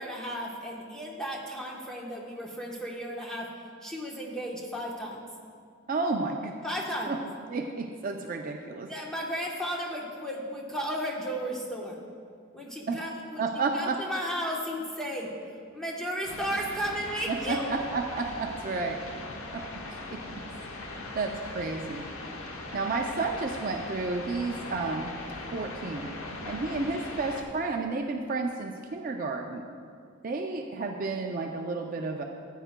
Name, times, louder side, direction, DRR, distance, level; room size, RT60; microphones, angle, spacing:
voice 1, 0.0-3.5 3.8-5.2 6.6-7.1 8.9-12.0 12.5-13.5 13.7-15.3 15.7-17.7, equal, 5° left, -2 dB, 1.0 m, -34 dB
voice 2, 5.9-6.6 7.1-7.2 7.5-8.9 12.9-13.0 13.4-14.0 17.3-19.0 19.5-19.7 20.1-20.2 21.2-22.1 22.7-25.1 25.5-26.1 26.5-29.6 30.2-32.2, right 3 dB, 40° right, 3 dB, 0.4 m, -31 dB
sound 1, 16.2-27.4, left 2 dB, 85° left, 1.0 m, -40 dB
14.0 x 8.9 x 2.2 m, 2.3 s
head